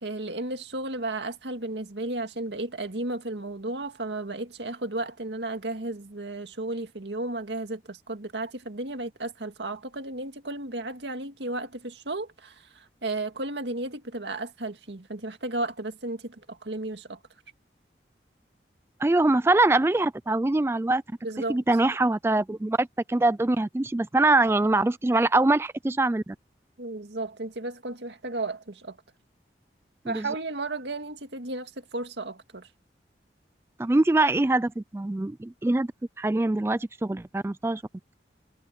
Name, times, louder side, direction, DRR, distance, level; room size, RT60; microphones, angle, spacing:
voice 1, 0.0-17.2 21.2-21.6 26.8-29.0 30.1-32.7, right 2 dB, 85° right, 2.1 m, -34 dB
voice 2, 19.0-21.0 21.5-26.4 30.1-30.3 33.8-35.9 36.2-37.8, right 2 dB, 15° right, 0.3 m, -23 dB
head